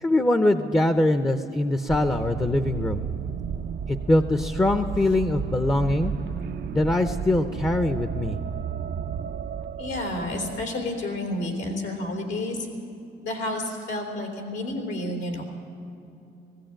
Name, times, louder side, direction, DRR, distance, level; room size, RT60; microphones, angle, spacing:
voice 1, 0.0-3.0 3.9-6.1 6.7-8.4, left 1 dB, 15° left, 8 dB, 0.7 m, -23 dB
sound 1, 1.9-10.6, right 7 dB, 60° right, 0.6 m, -33 dB
voice 2, 9.8-12.6 13.2-15.4, left 1 dB, 85° left, 1 dB, 3.6 m, -30 dB
18.5 x 16.0 x 8.9 m, 2.7 s
cardioid pair, 115°, 20 cm